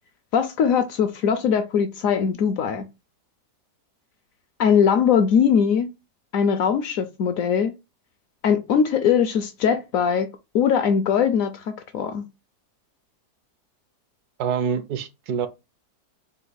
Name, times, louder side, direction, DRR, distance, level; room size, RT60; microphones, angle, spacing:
voice 1, 0.3-2.8 4.6-5.9 6.3-7.7 8.4-10.3 10.5-12.2, left 7 dB, 70° left, 0.8 m, -21 dB
voice 2, 14.4-15.5, right 7 dB, 75° right, 1.1 m, -26 dB
4.4 x 2.7 x 3.9 m
omnidirectional pair, 1.8 m